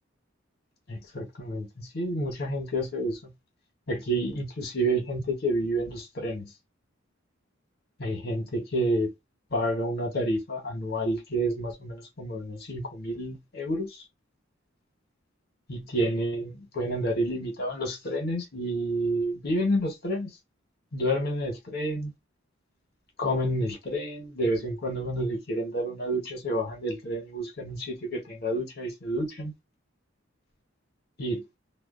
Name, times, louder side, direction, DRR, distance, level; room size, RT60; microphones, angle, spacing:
voice 1, 0.9-3.3 3.9-6.5 8.0-9.1 9.5-14.0 15.7-20.3 20.9-22.1 23.2-29.5 31.2-31.4, right 1 dB, 55° left, 1.0 m, -29 dB
2.5 x 2.1 x 2.4 m
head